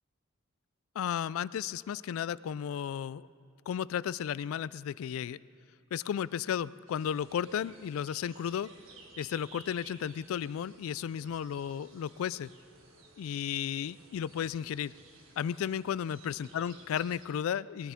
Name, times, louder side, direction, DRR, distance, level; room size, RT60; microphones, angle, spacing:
voice 1, 1.0-3.3 3.7-5.4 5.9-8.7 9.2-12.5 13.2-14.9 15.4-17.9, left 8 dB, 80° left, 20 dB, 0.3 m, -34 dB
sound 1, 6.9-17.2, right 3 dB, 75° right, 1.6 m, -56 dB
20.0 x 14.0 x 3.6 m, 2.6 s
head